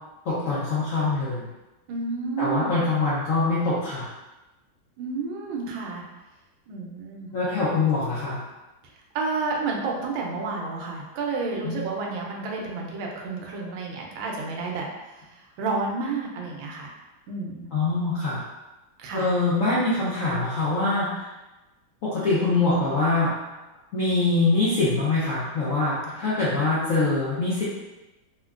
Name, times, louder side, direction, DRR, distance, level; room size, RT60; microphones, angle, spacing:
voice 1, 0.3-1.4 2.4-4.1 7.3-8.4 11.6-11.8 17.7-18.4 19.1-21.2 22.0-23.4 23.9-27.6, left 3 dB, 75° left, -9 dB, 0.7 m, -24 dB
voice 2, 1.9-2.9 5.0-6.1 6.7-7.3 9.1-14.9 15.1-16.9 17.3-17.7 19.0-19.3, right 4 dB, 85° right, 0 dB, 1.4 m, -30 dB
3.7 x 2.2 x 2.3 m, 1.0 s
omnidirectional pair, 2.1 m